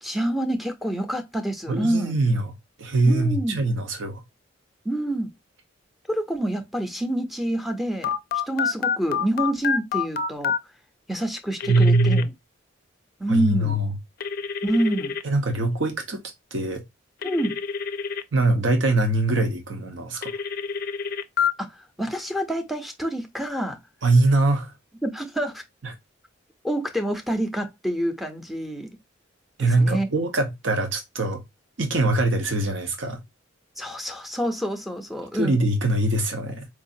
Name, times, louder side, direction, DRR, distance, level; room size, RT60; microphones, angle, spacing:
voice 1, 0.0-2.2 3.0-3.7 4.8-5.3 6.1-10.5 11.1-12.3 13.2-13.8 14.6-15.2 17.2-17.6 21.6-23.8 25.0-25.6 26.6-28.9 29.6-30.1 33.8-35.6, right 1 dB, ahead, 0.6 m, -27 dB
voice 2, 1.7-2.5 2.8-4.2 11.7-12.3 13.3-13.9 15.2-16.2 16.5-16.8 18.3-20.3 24.0-24.7 29.6-31.4 31.8-33.2 35.4-36.7, right 2 dB, 70° right, 0.8 m, -22 dB
Telephone, 8.0-10.6 11.6-12.2 14.2-15.2 17.2-18.2 20.2-21.5, left 6 dB, 50° left, 0.4 m, -27 dB
4.6 x 2.4 x 2.6 m
head